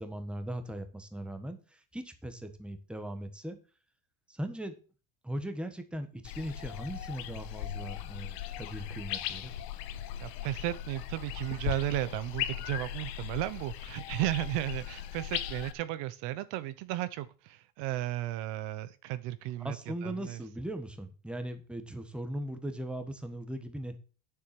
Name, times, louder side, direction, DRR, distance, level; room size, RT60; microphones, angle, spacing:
voice 1, 0.0-3.6 4.3-4.7 5.2-9.5 19.6-24.0, right 1 dB, ahead, 1.3 m, -39 dB
sound 1, 6.2-15.7, left 12 dB, 80° left, 1.5 m, -38 dB
voice 2, 10.2-20.4, right 15 dB, 55° right, 0.9 m, -34 dB
9.6 x 7.2 x 6.0 m
cardioid pair, 145°, 50 cm